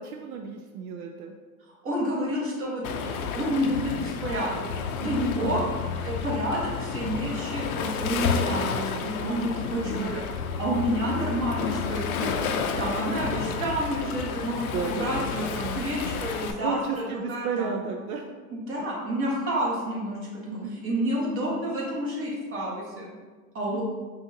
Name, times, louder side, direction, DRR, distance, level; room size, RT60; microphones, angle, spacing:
voice 1, 0.0-1.3 5.4-5.7 9.9-10.2 14.7-15.3 16.6-18.2 20.5-20.8 23.7-23.8, right 5 dB, 75° right, 3 dB, 0.5 m, -33 dB
voice 2, 1.8-4.7 5.0-5.6 6.0-10.2 10.6-12.3 12.8-17.8 18.5-20.4 20.7-23.1 23.5-23.8, equal, 30° right, -5 dB, 1.4 m, -29 dB
Waves surf, 2.8-16.5, left 6 dB, 70° left, 0.6 m, -31 dB
5.5 x 2.5 x 2.8 m, 1.4 s
hypercardioid pair, 120°, 45 cm